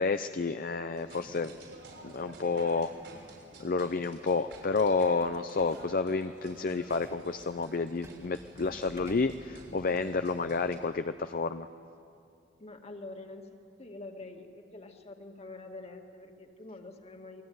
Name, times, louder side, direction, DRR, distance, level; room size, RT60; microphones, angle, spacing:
voice 1, 0.0-1.5 2.0-2.9 3.6-11.7, left 4 dB, 50° left, 9 dB, 0.6 m, -30 dB
sound 1, 0.9-10.8, right 2 dB, 85° right, 6.3 m, -52 dB
sound 2, 4.6-10.0, equal, 15° right, 2.1 m, -54 dB
voice 2, 12.6-13.5 13.8-17.4, left 2 dB, 35° left, 4 dB, 2.1 m, -46 dB
28.0 x 21.0 x 9.5 m, 2.5 s
head